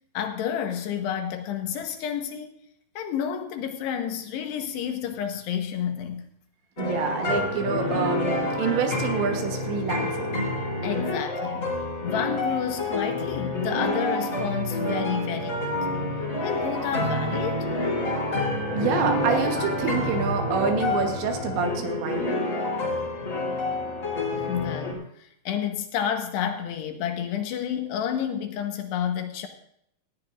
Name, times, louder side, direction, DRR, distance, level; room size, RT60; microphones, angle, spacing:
voice 1, 0.1-2.5 3.0-6.3 10.8-11.8 12.0-16.0 16.4-17.7 24.3-29.5, left 8 dB, 75° left, 5 dB, 3.0 m, -30 dB
sound 1, 6.8-24.9, left 2 dB, 20° left, 3.1 m, -28 dB
voice 2, 6.8-10.4 18.7-22.4, right 6 dB, 75° right, 4 dB, 3.4 m, -27 dB
19.0 x 14.5 x 2.5 m, 0.71 s
omnidirectional pair, 5.3 m